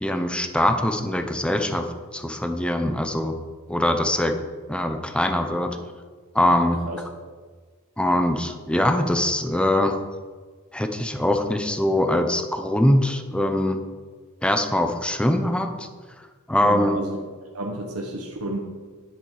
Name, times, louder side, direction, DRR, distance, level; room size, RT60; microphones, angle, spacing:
voice 1, 0.0-1.8 2.1-3.4 3.7-4.3 4.7-5.7 6.3-6.8 8.0-9.9 10.7-13.8 14.4-15.7 16.5-17.0, left 1 dB, 5° left, 6 dB, 0.7 m, -22 dB
voice 2, 16.6-17.2 17.5-18.6, right 1 dB, 75° right, 0 dB, 1.2 m, -31 dB
10.0 x 7.5 x 4.8 m, 1.5 s
head